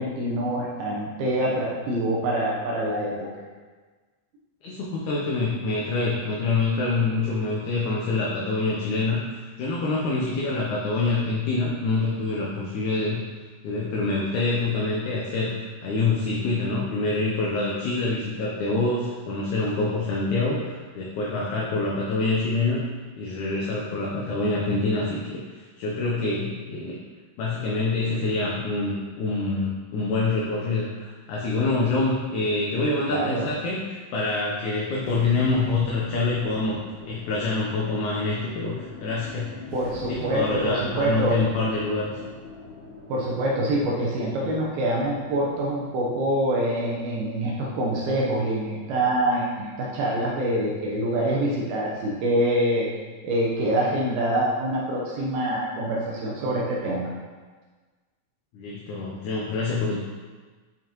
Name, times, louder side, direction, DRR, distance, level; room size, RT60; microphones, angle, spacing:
voice 1, 0.0-3.1 33.1-33.5 39.7-41.4 43.1-52.9 53.2-57.1, right 1 dB, 85° right, -4 dB, 2.9 m, -25 dB
voice 2, 4.6-13.2 13.6-15.6 15.8-22.8 23.2-27.0 27.4-39.8 40.1-42.1 58.5-60.0, left 3 dB, 70° left, -4 dB, 1.9 m, -26 dB
sound 1, 35.0-51.4, left 2 dB, 90° left, 3.3 m, -43 dB
9.1 x 5.3 x 3.0 m, 1.4 s
omnidirectional pair, 4.2 m